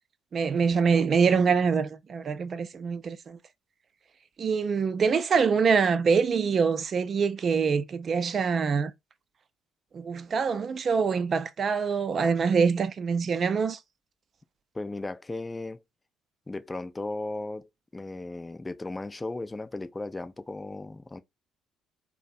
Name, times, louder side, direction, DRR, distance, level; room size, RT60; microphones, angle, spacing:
voice 1, 0.3-3.4 4.4-8.9 9.9-13.8, right 5 dB, 45° right, 0.4 m, -25 dB
voice 2, 14.7-15.8 16.5-21.2, left 2 dB, 20° left, 0.4 m, -36 dB
2.5 x 2.0 x 2.4 m
hypercardioid pair, 50°, 0 cm